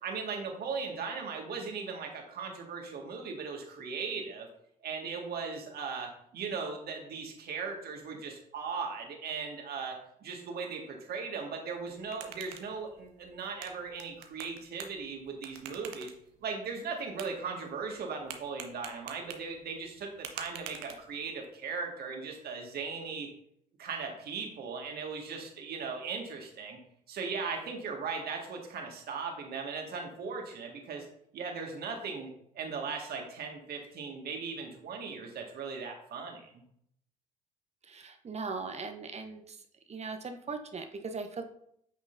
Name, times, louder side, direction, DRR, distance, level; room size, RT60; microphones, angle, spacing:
voice 1, 0.0-4.5 4.8-16.1 16.4-23.3 23.8-26.8 27.1-31.1 31.3-36.6, right 5 dB, 55° right, 2 dB, 1.8 m, -38 dB
sound 1, 11.8-21.4, right 9 dB, 75° right, 0.9 m, -48 dB
voice 2, 37.8-39.6 39.9-41.4, right 4 dB, 35° right, 7 dB, 0.9 m, -39 dB
9.3 x 6.1 x 2.6 m, 0.70 s
hypercardioid pair, 55°, 19 cm